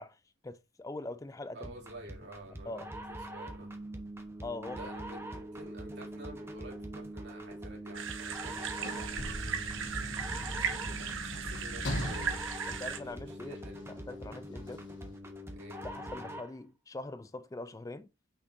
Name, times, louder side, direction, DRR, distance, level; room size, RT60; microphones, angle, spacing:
voice 1, 0.0-1.7 2.7-2.9 4.4-4.9 12.7-13.6 14.1-14.9 15.8-18.1, left 2 dB, 15° left, 0.3 m, -42 dB
voice 2, 1.5-3.7 4.7-9.4 10.4-12.4 13.0-13.8 15.5-15.8, right 1 dB, 55° right, 2.9 m, -50 dB
sound 1, 1.6-16.6, right 1 dB, 10° right, 0.9 m, -43 dB
sound 2, 7.9-13.0, right 6 dB, 75° right, 1.1 m, -37 dB
Sliding door / Slam, 8.4-13.8 14.7-14.8, left 1 dB, 65° left, 1.4 m, -40 dB
6.6 x 5.8 x 2.6 m
head